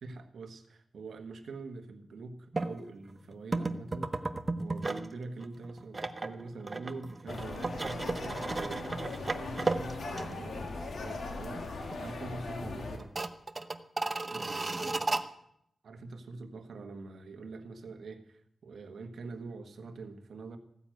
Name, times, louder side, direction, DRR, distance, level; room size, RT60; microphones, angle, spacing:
voice 1, 0.0-4.3 4.6-13.1 14.3-15.1 15.8-20.6, right 3 dB, 80° right, 7 dB, 1.5 m, -44 dB
sound 1, 2.5-2.7 3.5-5.1 5.4-10.7 11.0-11.1 11.5-12.1 12.3-12.4 13.0-15.2, right 3 dB, 30° right, 0.8 m, -34 dB
sound 2, 7.3-13.0, left 3 dB, 75° left, 2.4 m, -39 dB
15.5 x 9.8 x 7.8 m, 0.74 s
wide cardioid pair, 115°, 0 cm